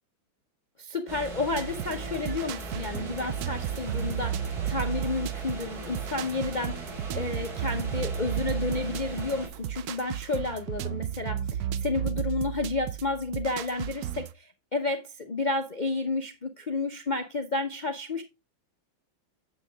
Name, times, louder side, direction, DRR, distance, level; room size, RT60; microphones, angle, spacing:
voice 1, 0.8-18.2, left 3 dB, 70° left, 0.4 m, -31 dB
sound 1, 1.1-9.5, right 2 dB, 50° right, 2.6 m, -40 dB
sound 2, 1.5-14.3, right 10 dB, 70° right, 0.9 m, -34 dB
9.0 x 7.4 x 3.4 m
omnidirectional pair, 2.1 m